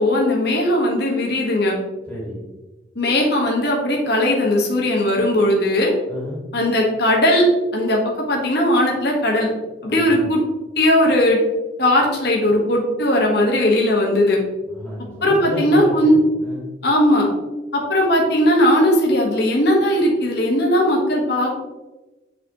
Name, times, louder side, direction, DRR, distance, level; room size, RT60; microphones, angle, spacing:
voice 1, 0.0-1.7 2.9-5.9 6.5-7.4 7.7-8.0 8.3-9.5 9.8-10.4 10.8-11.4 11.8-14.4 15.2-16.2 16.8-17.3 17.7-21.5, left 1 dB, 60° left, -1 dB, 1.4 m, -18 dB
voice 2, 2.1-2.5 6.1-6.4 9.9-10.3 14.6-16.7, left 1 dB, 10° left, -6 dB, 1.9 m, -32 dB
7.8 x 4.2 x 3.0 m, 1.1 s
head